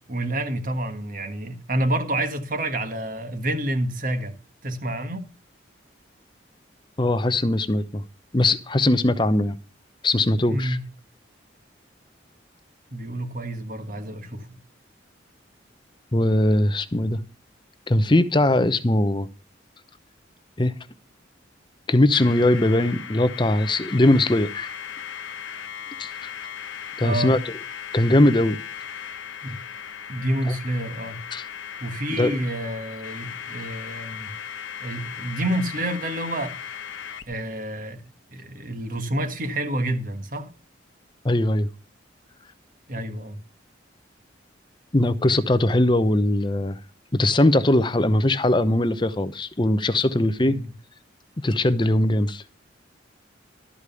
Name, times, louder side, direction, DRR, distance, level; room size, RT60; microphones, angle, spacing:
voice 1, 0.1-4.3 4.6-5.2 10.5-10.8 12.9-14.6 27.0-27.3 29.4-29.5 30.1-31.2 31.8-34.3 34.8-36.5 37.3-38.0 38.3-40.5 42.9-43.4 50.4-50.7, right 1 dB, 45° right, 1.5 m, -28 dB
voice 2, 7.0-8.0 8.3-9.6 10.0-10.8 16.1-17.2 17.9-19.3 20.6-20.7 21.9-24.7 26.0-26.3 27.0-27.4 27.9-28.6 31.3-31.4 32.2-32.3 41.2-41.7 44.9-46.8 47.1-50.6 51.4-52.4, left 1 dB, 25° left, 0.7 m, -20 dB
sound 1, 22.1-37.3, left 8 dB, 80° left, 0.9 m, -37 dB
12.5 x 4.9 x 6.9 m
head